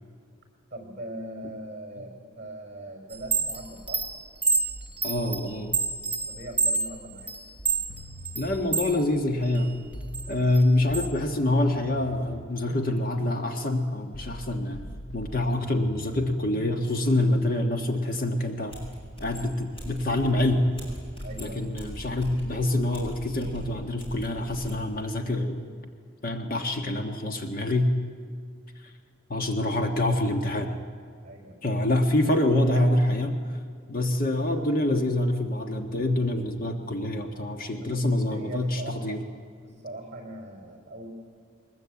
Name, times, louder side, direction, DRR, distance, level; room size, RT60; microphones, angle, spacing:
voice 1, 0.7-4.0 6.3-7.3 21.2-21.7 31.2-31.6 37.8-39.2 39.6-41.1, right 1 dB, 30° right, 3 dB, 5.5 m, -40 dB
Chime, 3.1-9.0 9.4-11.1, right 4 dB, 5° right, 1.0 m, -28 dB
voice 2, 5.0-5.8 8.3-9.8 10.3-14.8 15.1-18.8 19.2-20.7 21.4-25.6 26.2-27.9 29.3-30.8 31.6-33.4 33.9-39.2, left 1 dB, 45° left, 4 dB, 1.4 m, -26 dB
sound 1, 7.9-17.7, left 1 dB, 80° left, 0.9 m, -43 dB
sound 2, 18.7-24.8, right 1 dB, 25° left, 6.7 m, -40 dB
22.0 x 21.0 x 8.4 m, 2.1 s
head